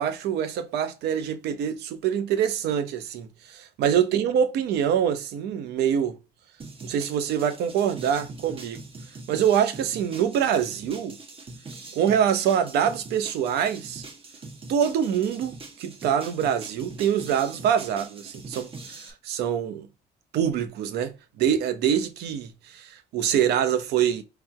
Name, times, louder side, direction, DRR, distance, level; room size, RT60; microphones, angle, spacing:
voice 1, 0.0-6.2 6.8-8.8 9.3-11.2 11.9-14.0 14.7-19.9 20.3-24.2, right 9 dB, 75° right, 0.7 m, -25 dB
sound 1, 6.6-19.1, right 3 dB, 35° right, 1.0 m, -43 dB
3.2 x 2.9 x 4.7 m
cardioid pair, 110°, 17 cm